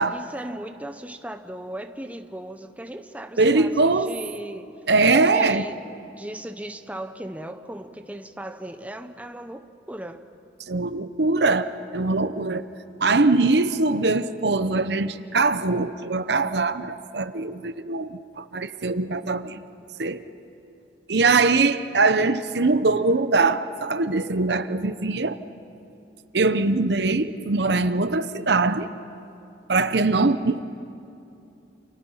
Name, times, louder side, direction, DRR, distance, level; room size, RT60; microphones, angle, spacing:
voice 1, 0.1-4.8 5.2-5.8 6.1-10.2, right 1 dB, 10° right, 7 dB, 0.9 m, -37 dB
voice 2, 3.4-4.1 4.9-5.7 10.7-12.6 13.0-19.6 20.0-20.2 21.1-25.4 26.3-28.9 29.7-30.6, right 3 dB, 65° right, 12 dB, 0.8 m, -22 dB
29.0 x 28.5 x 5.7 m, 2.7 s
head